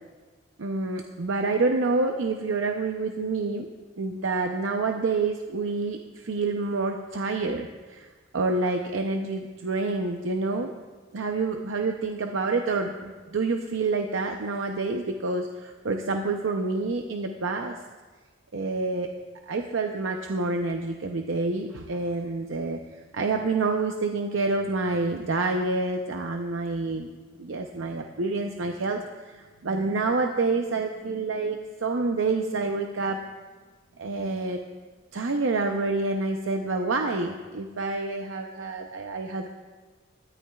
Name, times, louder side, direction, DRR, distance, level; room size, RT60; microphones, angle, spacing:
voice 1, 0.6-3.7 4.0-10.7 11.1-17.8 18.5-19.1 19.5-22.8 23.1-27.1 27.4-33.3 34.0-34.6 35.1-39.5, right 3 dB, 80° right, 4 dB, 0.7 m, -28 dB
20.0 x 13.5 x 2.4 m, 1.4 s
head